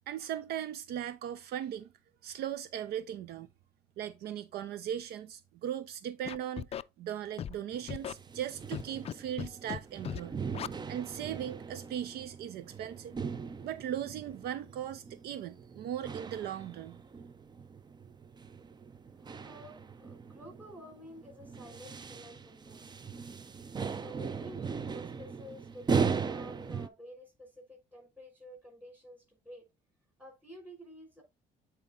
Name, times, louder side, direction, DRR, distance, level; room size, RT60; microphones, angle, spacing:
voice 1, 0.1-1.9 2.2-3.5 4.0-6.7 7.0-10.3 10.9-13.1 13.6-17.0, right 10 dB, 70° right, 0.6 m, -38 dB
Scratching (performance technique), 6.2-6.8 7.4-7.5 7.9-8.1 8.7-9.1 9.4-9.8 10.0-10.2 10.5-10.7, left 9 dB, 35° left, 0.3 m, -37 dB
sound 1, 7.7-26.9, right 5 dB, 25° right, 0.5 m, -39 dB
voice 2, 19.2-23.0 23.8-29.7 30.2-31.2, equal, 10° right, 5.0 m, -51 dB
8.3 x 4.4 x 3.7 m
cardioid pair, 110°, 17 cm